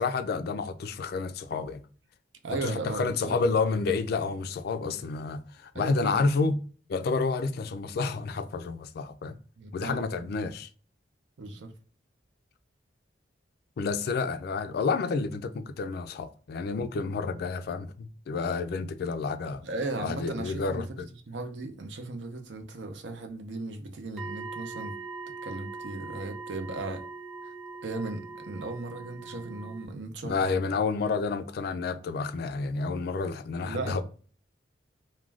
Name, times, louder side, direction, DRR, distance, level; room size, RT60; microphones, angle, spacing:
voice 1, 0.0-1.8 2.5-6.6 6.9-9.4 9.7-10.7 13.8-19.6 20.0-21.1 30.2-34.0, left 4 dB, 60° left, 0.3 m, -30 dB
voice 2, 2.4-3.5 5.7-6.6 9.6-10.2 11.4-11.7 19.6-20.9 21.3-25.0 25.4-27.0 27.4-27.5 27.8-30.6 33.6-34.0, right 2 dB, 75° right, 0.6 m, -36 dB
sound 1, 24.2-29.9, right 4 dB, ahead, 0.6 m, -41 dB
2.4 x 2.2 x 3.2 m
head